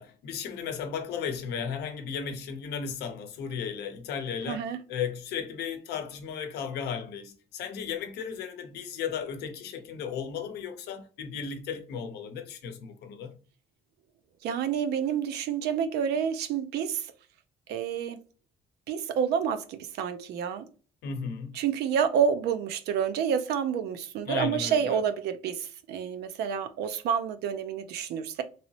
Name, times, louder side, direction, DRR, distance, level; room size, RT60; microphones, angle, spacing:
voice 1, 0.0-13.3 21.0-21.6 24.2-25.0, left 7 dB, 75° left, 0.7 m, -35 dB
voice 2, 4.5-4.8 14.4-17.1 17.7-18.2 18.9-20.7 21.5-28.4, right 7 dB, 75° right, 0.5 m, -29 dB
3.1 x 2.9 x 2.8 m
cardioid pair, 110°, 17 cm